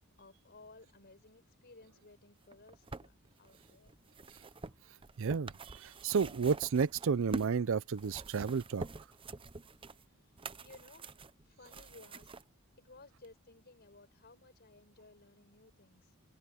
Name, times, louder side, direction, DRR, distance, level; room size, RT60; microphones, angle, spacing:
voice 1, 0.2-3.9 10.1-11.1 11.4-12.3 12.8-16.1, left 3 dB, 50° left, 4.9 m, -58 dB
sound 1, 2.4-7.6 7.9-12.4 13.2-13.3, right 3 dB, 25° right, 0.7 m, -47 dB
voice 2, 5.2-8.9, right 5 dB, 65° right, 0.5 m, -32 dB
open air
head